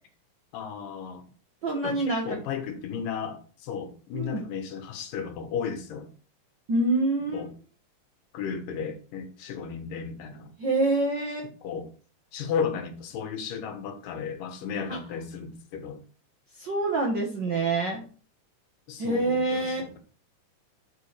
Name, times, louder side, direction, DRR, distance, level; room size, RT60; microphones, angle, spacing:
voice 1, 0.5-1.3 1.8-6.1 7.3-7.5 8.3-10.5 11.6-11.9 12.3-16.0 18.9-20.0, left 6 dB, 85° left, 2.9 m, -34 dB
voice 2, 1.6-2.4 4.1-4.4 6.7-7.4 10.6-11.5 14.9-15.0 16.6-18.0 19.0-19.8, right 2 dB, 60° right, 1.2 m, -26 dB
11.5 x 4.8 x 3.2 m
omnidirectional pair, 3.7 m